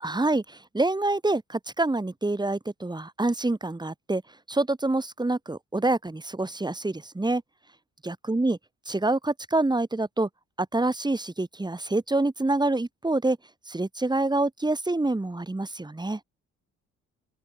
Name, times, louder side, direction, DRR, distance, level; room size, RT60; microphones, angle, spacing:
voice 1, 0.0-0.4 0.7-4.2 4.5-7.4 8.0-8.6 8.9-10.3 10.6-13.4 13.7-16.2, right 2 dB, 15° right, 4.2 m, -26 dB
open air
cardioid pair, 90°, 30 cm